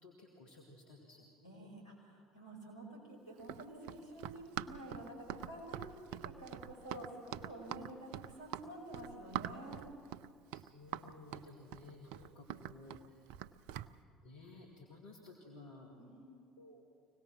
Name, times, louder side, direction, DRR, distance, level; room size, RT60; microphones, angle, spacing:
voice 1, 0.0-1.7 10.5-13.3 14.2-16.0 16.6-16.8, left 2 dB, 65° left, -1 dB, 2.4 m, -56 dB
voice 2, 1.4-9.8 16.0-16.5, right 1 dB, 85° left, 0 dB, 5.1 m, -50 dB
Run, 3.4-13.9, right 11 dB, 60° right, 0.5 m, -44 dB
25.0 x 18.0 x 6.0 m, 2.2 s
figure-of-eight pair, 55°, 2 cm